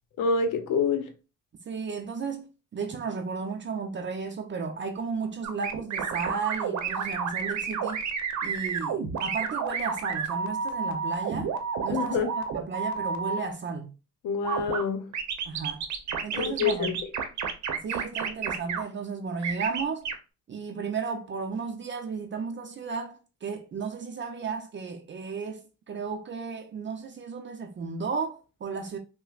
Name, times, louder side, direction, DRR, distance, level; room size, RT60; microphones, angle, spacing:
voice 1, 0.2-1.1 11.9-12.3 14.2-15.1 16.3-16.9, left 5 dB, 85° left, 0.7 m, -27 dB
voice 2, 1.7-8.0 8.4-11.5 11.8-13.9 15.4-15.9 16.2-17.0 17.8-20.1 20.5-29.0, right 5 dB, 40° right, 0.5 m, -34 dB
sound 1, 5.4-13.4 14.4-14.8 15.1-18.8 19.4-20.1, right 6 dB, 70° right, 0.7 m, -30 dB
5.5 x 2.1 x 2.4 m
cardioid pair, 90°, 30 cm